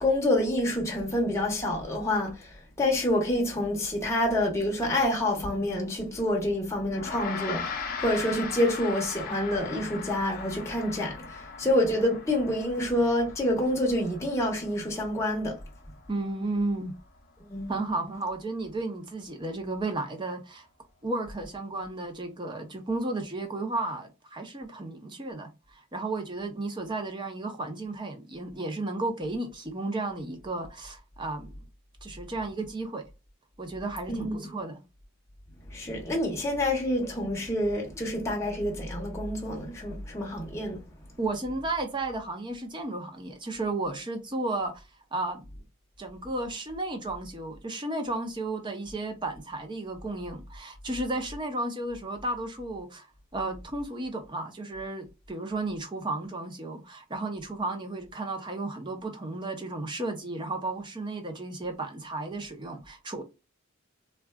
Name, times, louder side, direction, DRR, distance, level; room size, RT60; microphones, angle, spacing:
voice 1, 0.0-15.6 17.4-17.9 34.1-34.5 35.7-40.8, left 1 dB, 15° left, 0.8 m, -27 dB
Gong, 6.9-16.6, left 5 dB, 45° left, 0.6 m, -39 dB
voice 2, 16.1-16.9 17.7-20.7 21.0-31.5 32.0-33.0 33.6-34.8 41.2-44.8 45.1-45.4 46.0-53.1 53.3-63.2, right 2 dB, 20° right, 0.5 m, -33 dB
3.6 x 2.2 x 2.2 m
head